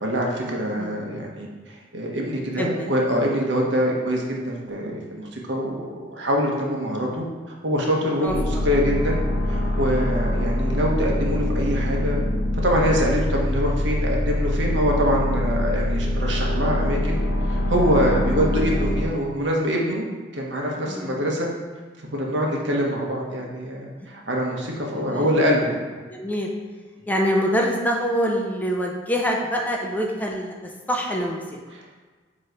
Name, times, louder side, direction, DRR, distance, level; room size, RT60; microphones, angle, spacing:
voice 1, 0.0-7.2 7.6-9.2 9.5-12.2 12.6-20.0 20.3-21.5 22.1-25.8 31.7-31.9, equal, 70° right, -1 dB, 1.2 m, -24 dB
voice 2, 8.2-8.6 18.2-18.3 20.9-21.3 24.9-25.3 26.1-26.5 27.1-30.5 30.9-31.6, equal, 10° left, 0 dB, 0.6 m, -25 dB
sound 1, 8.3-19.0, left 1 dB, 85° left, 0.8 m, -24 dB
7.5 x 3.1 x 4.6 m, 1.4 s
head